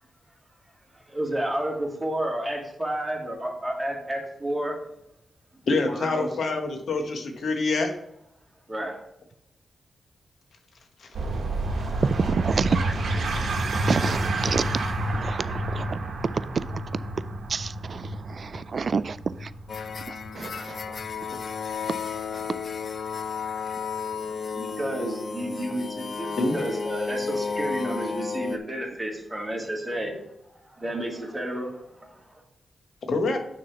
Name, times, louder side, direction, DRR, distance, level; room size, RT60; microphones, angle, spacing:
voice 1, 0.9-4.8 5.5-6.3 8.7-9.0 24.5-30.2 30.7-32.4, right 1 dB, 15° right, -2 dB, 2.3 m, -31 dB
voice 2, 5.7-7.9 11.0-11.1 13.3-13.6 26.4-26.6 33.1-33.4, left 3 dB, 70° left, 5 dB, 1.2 m, -26 dB
sound 1, 11.1-22.2, right 2 dB, 70° right, 1.0 m, -29 dB
voice 3, 12.0-12.8 13.7-14.7 15.1-16.0 16.7-16.8 17.5-19.5 20.1-21.0 21.9-22.1, right 5 dB, 55° right, 16 dB, 0.3 m, -29 dB
sound 2, 19.7-28.6, left 5 dB, 55° left, 0.6 m, -32 dB
6.3 x 3.9 x 5.8 m, 0.80 s
cardioid pair, 80°, 0 cm